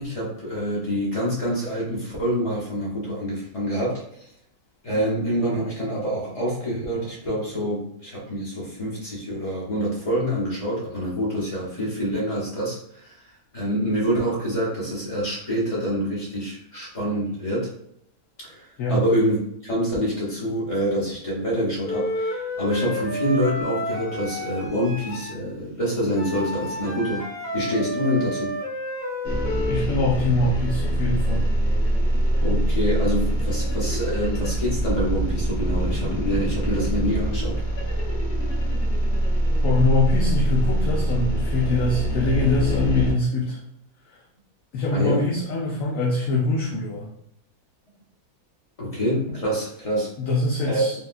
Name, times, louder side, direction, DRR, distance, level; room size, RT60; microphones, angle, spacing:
voice 1, 0.0-4.0 4.8-13.2 13.5-17.7 18.4-19.4 19.6-27.3 27.5-28.6 32.4-38.0 44.9-45.3 48.8-50.1 50.7-50.8, equal, 30° left, -6 dB, 0.7 m, -26 dB
Wind instrument woodwind instrument, 21.8-25.4 26.1-29.9, left 1 dB, 10° left, 1.1 m, -31 dB
sound 1, 29.2-43.1, right 1 dB, 50° left, 1.1 m, -24 dB
voice 2, 29.7-31.5 39.6-43.6 44.1-44.2 44.7-47.1 50.2-50.9, left 2 dB, 70° left, -3 dB, 0.9 m, -23 dB
3.6 x 2.2 x 2.4 m, 0.73 s
omnidirectional pair, 1.6 m